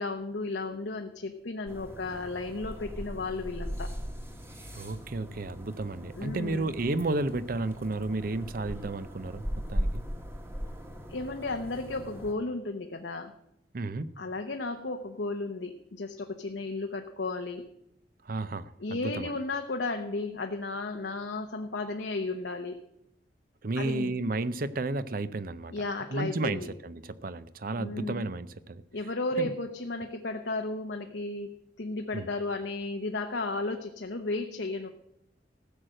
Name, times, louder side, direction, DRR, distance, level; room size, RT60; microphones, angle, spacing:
voice 1, 0.0-3.9 6.2-6.7 11.1-13.3 14.2-17.6 18.8-22.8 23.8-24.2 25.7-26.7 27.8-28.2 28.9-31.5 31.8-34.9, left 3 dB, 75° left, 4 dB, 0.9 m, -34 dB
sound 1, 1.7-12.3, equal, 15° right, 1.4 m, -39 dB
voice 2, 4.7-10.0 13.7-14.1 18.2-19.3 23.6-25.8 26.1-28.8 29.4-29.5 32.1-32.3, right 2 dB, 50° right, 15 dB, 0.6 m, -32 dB
15.5 x 6.5 x 7.6 m, 0.79 s
head